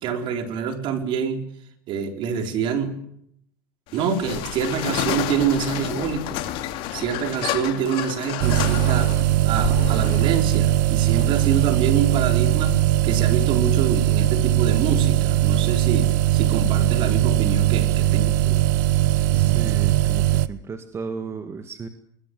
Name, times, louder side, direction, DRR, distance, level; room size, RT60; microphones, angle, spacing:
voice 1, 0.0-1.5 1.9-2.9 3.9-6.5 6.9-9.1 9.4-12.8 13.0-18.6, right 6 dB, 50° right, 7 dB, 3.7 m, -26 dB
sound 1, 3.9-14.3, left 12 dB, 55° left, 2.6 m, -31 dB
sound 2, 8.4-20.5, right 14 dB, 65° right, 0.9 m, -20 dB
voice 2, 19.3-21.9, right 5 dB, 25° right, 8 dB, 1.8 m, -35 dB
21.0 x 20.5 x 7.7 m, 0.72 s
supercardioid pair, 110°, 11 cm